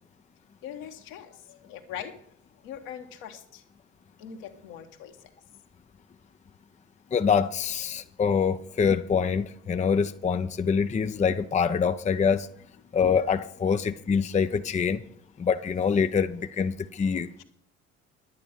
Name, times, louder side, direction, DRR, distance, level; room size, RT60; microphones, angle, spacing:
voice 1, 0.6-1.2 1.7-2.1 2.6-3.4 4.2-5.1, left 9 dB, 65° left, 1.5 m, -40 dB
voice 2, 7.1-12.5 12.9-15.0 15.4-17.4, left 6 dB, 20° left, 0.6 m, -25 dB
10.5 x 9.7 x 5.3 m
figure-of-eight pair, 55°, 38 cm